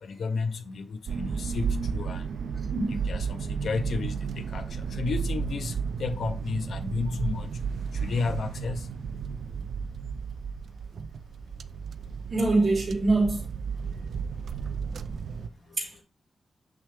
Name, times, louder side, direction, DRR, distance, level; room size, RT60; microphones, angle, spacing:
voice 1, 0.0-2.3 2.9-7.5 7.9-8.9 13.8-14.2 14.7-14.8 15.7-16.0, left 4 dB, 85° left, 0.6 m, -33 dB
sound 1, 1.1-15.5, right 6 dB, 90° right, 0.4 m, -33 dB
voice 2, 2.7-3.0 12.3-13.4 15.8-16.0, right 2 dB, 35° right, 3.7 m, -24 dB
6.5 x 5.9 x 3.4 m
wide cardioid pair, 180°, 0 cm